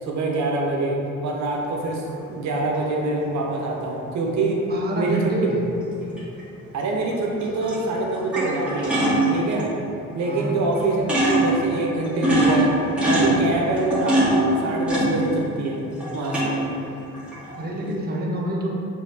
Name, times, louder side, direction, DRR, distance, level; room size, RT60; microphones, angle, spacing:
voice 1, 0.0-4.7 4.9-5.6 6.7-9.0 9.3-9.8 10.1-12.7 13.1-15.8 16.1-16.6, right 2 dB, 65° right, -1 dB, 0.8 m, -25 dB
sound 1, 2.1-2.2 6.2-6.4 7.4-7.8 8.1-9.6 10.4-10.5 10.7-10.8 11.1-11.6 12.0-15.7 16.0-16.7 17.1-17.6, right 1 dB, 5° right, 1.4 m, -22 dB
voice 2, 4.7-5.6 10.2-10.6 17.6-18.7, right 1 dB, 30° right, -2 dB, 0.8 m, -27 dB
5.7 x 2.7 x 2.7 m, 2.9 s
cardioid pair, 90°, 30 cm